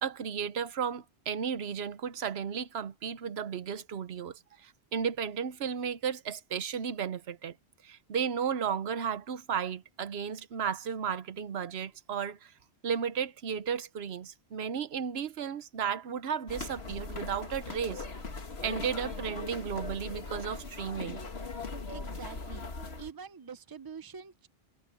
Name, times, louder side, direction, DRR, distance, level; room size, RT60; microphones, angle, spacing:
voice 1, 0.0-7.5 7.8-12.5 12.8-18.0 18.6-21.2, right 7 dB, 85° right, 1.1 m, -34 dB
sound 1, 16.5-23.1, left 3 dB, 80° left, 2.1 m, -40 dB
voice 2, 21.9-22.6 23.0-24.5, right 6 dB, 25° right, 0.7 m, -45 dB
omnidirectional pair, 1.0 m